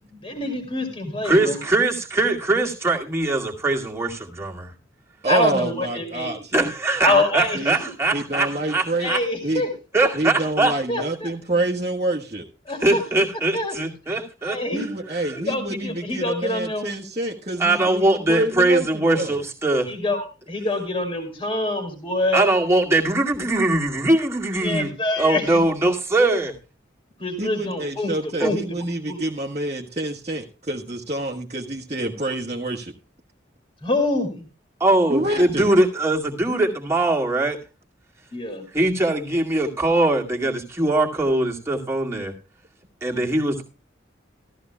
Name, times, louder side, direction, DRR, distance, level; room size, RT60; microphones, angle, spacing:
voice 1, 0.2-1.6 5.3-6.4 7.0-7.9 9.0-9.7 10.9-11.3 12.7-13.0 13.5-13.7 14.4-14.9 15.3-16.8 19.9-22.4 24.6-25.6 27.2-28.1 28.4-28.6 29.1-29.2 33.8-34.4 38.3-38.7, left 2 dB, 30° left, 5 dB, 2.6 m, -25 dB
voice 2, 1.2-4.7 6.5-9.2 9.9-10.8 12.8-14.9 15.3-15.4 17.6-19.9 22.3-24.9 25.2-26.5 28.4-28.5 34.8-37.6 38.7-42.3 43.0-43.6, right 2 dB, 15° right, -2 dB, 2.1 m, -21 dB
voice 3, 5.2-6.7 7.1-7.2 7.5-7.7 8.1-9.1 9.4-9.6 10.1-12.5 14.7-18.9 19.1-19.4 27.4-32.9 35.1-35.7, right 1 dB, 35° right, -1 dB, 1.3 m, -27 dB
14.5 x 14.0 x 2.2 m, 0.32 s
head